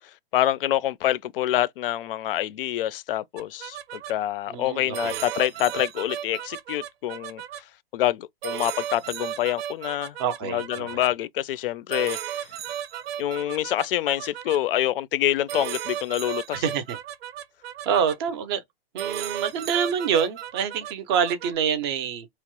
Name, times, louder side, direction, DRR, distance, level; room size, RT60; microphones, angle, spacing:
voice 1, 0.3-7.4 7.9-10.2 10.4-12.5 13.2-16.6, left 13 dB, 65° left, 0.4 m, -26 dB
sound 1, 3.4-4.1 4.9-7.6 8.4-11.1 11.9-14.6 15.5-18.2 19.0-21.5, right 10 dB, 80° right, 0.6 m, -35 dB
voice 2, 4.5-5.2 10.2-11.1 16.5-17.0 17.9-18.6 18.9-22.3, right 7 dB, 25° right, 0.5 m, -26 dB
3.0 x 2.0 x 2.9 m
hypercardioid pair, 160°, 30 cm